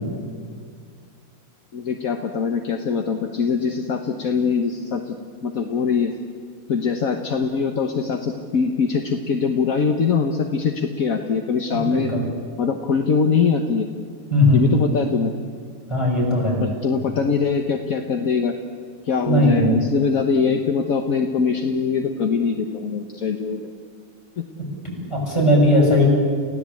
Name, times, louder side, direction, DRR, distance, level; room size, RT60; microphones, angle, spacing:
voice 1, 1.7-5.2 5.4-6.1 6.7-12.1 12.6-13.9 14.5-15.3 16.6-18.5 19.0-23.7 24.4-24.5, left 5 dB, 60° left, 4 dB, 1.6 m, -22 dB
voice 2, 11.7-12.2 14.3-14.7 15.9-16.6 19.3-19.7 24.8-26.1, left 1 dB, 15° left, -3 dB, 7.1 m, -18 dB
29.5 x 16.5 x 8.5 m, 2.1 s
omnidirectional pair, 1.7 m